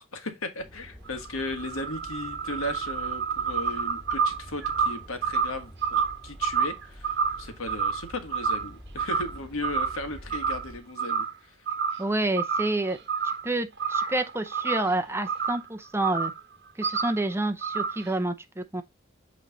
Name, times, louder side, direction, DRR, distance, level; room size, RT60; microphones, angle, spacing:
voice 1, 0.0-11.5, left 2 dB, 75° left, 1.5 m, -36 dB
sound 1, 0.6-10.8, equal, 20° left, 2.4 m, -47 dB
sound 2, 1.1-8.7 9.0-9.4 9.6-10.7 11.0-11.3 11.7-12.1 12.4-13.5 13.8-15.7 16.0-16.4 16.8-17.2 17.6-18.1, right 6 dB, 50° right, 1.1 m, -29 dB
voice 2, 12.0-13.0 13.2-16.3 16.8-18.8, right 2 dB, 10° right, 0.6 m, -28 dB
8.2 x 3.2 x 4.0 m
head